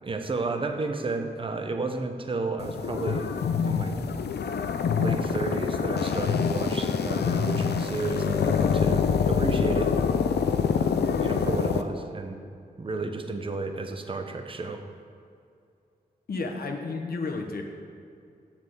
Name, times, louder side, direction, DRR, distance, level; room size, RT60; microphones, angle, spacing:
voice 1, 0.0-3.3 3.7-4.0 4.9-9.9 10.7-12.4 12.8-14.8, right 3 dB, 30° right, 6 dB, 0.8 m, -32 dB
sound 1, 2.6-11.8, left 6 dB, 90° left, 0.6 m, -25 dB
voice 2, 16.3-17.6, left 3 dB, 65° left, 2 dB, 1.1 m, -32 dB
8.9 x 5.7 x 7.9 m, 2.4 s
wide cardioid pair, 145°, 17 cm